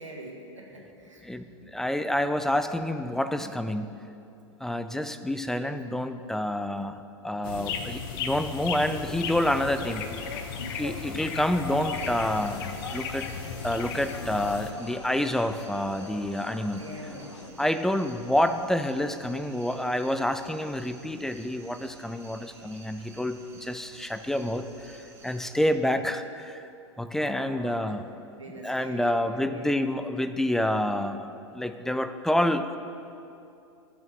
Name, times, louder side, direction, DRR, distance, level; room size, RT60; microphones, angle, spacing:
voice 1, 0.0-1.2 7.4-7.8 16.7-17.6 27.1-27.8 28.3-29.7, right 1 dB, 80° right, -1 dB, 1.6 m, -43 dB
voice 2, 1.7-4.0 4.6-10.1 10.8-13.3 13.6-16.8 17.6-26.6 27.0-28.1 28.6-32.8, left 1 dB, 5° left, 10 dB, 0.3 m, -28 dB
sound 1, 7.4-14.7, left 6 dB, 45° left, 0.9 m, -36 dB
sound 2, 8.8-17.5, left 4 dB, 70° left, 0.7 m, -42 dB
sound 3, 11.9-25.6, right 2 dB, 15° right, 1.7 m, -52 dB
14.5 x 6.2 x 5.9 m, 2.7 s
figure-of-eight pair, 95°, 16 cm